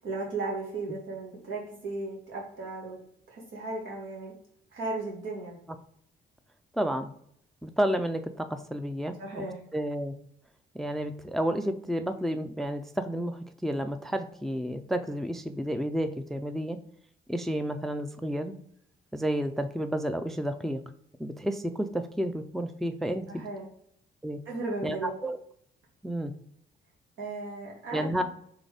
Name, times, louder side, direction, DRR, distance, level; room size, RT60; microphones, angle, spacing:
voice 1, 0.0-3.0 3.3-4.4 4.7-5.6 9.2-9.6 23.3-23.7 24.5-25.1 27.2-28.1, right 3 dB, 80° right, -3 dB, 1.7 m, -35 dB
voice 2, 6.7-7.1 7.6-9.5 9.7-10.2 10.7-16.8 17.3-18.6 19.1-20.8 21.2-23.4 24.2-24.4 24.8-25.4 26.0-26.3 27.9-28.2, equal, ahead, 9 dB, 0.3 m, -31 dB
3.9 x 3.3 x 3.5 m, 0.70 s
cardioid pair, 90°, 20 cm